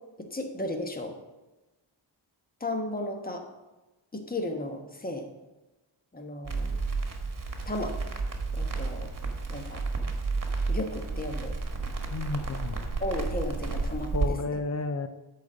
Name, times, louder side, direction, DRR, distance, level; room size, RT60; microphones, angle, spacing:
voice 1, 0.2-1.1 2.6-3.4 4.1-5.3 6.1-6.8 7.7-8.0 8.5-9.1 9.5-9.8 10.7-11.5 13.0-14.1, left 1 dB, 15° left, 4 dB, 1.3 m, -34 dB
Crackle, 6.4-14.3, right 3 dB, 40° right, 1.5 m, -31 dB
voice 2, 12.1-12.8 14.1-15.1, left 3 dB, 35° left, 10 dB, 0.7 m, -31 dB
8.3 x 4.2 x 6.5 m, 1.1 s
cardioid pair, 60°, 50 cm